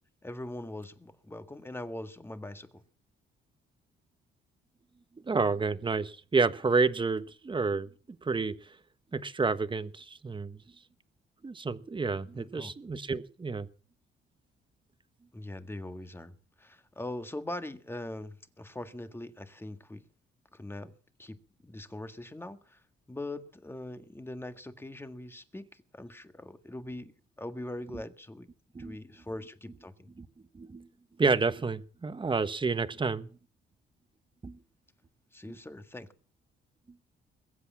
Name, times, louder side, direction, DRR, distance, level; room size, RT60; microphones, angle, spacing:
voice 1, 0.2-2.8 12.3-12.7 15.3-20.0 20.5-20.9 21.2-22.8 23.1-28.5 28.8-30.1 35.3-36.1, left 1 dB, 10° left, 1.6 m, -42 dB
voice 2, 5.2-7.9 8.2-8.7 9.1-10.6 11.4-13.7 28.7-29.0 30.2-30.3 30.5-30.9 31.2-33.3 34.4-34.6 35.4-35.6, right 4 dB, 25° right, 1.2 m, -29 dB
22.0 x 8.2 x 7.2 m
cardioid pair, 90°, 20 cm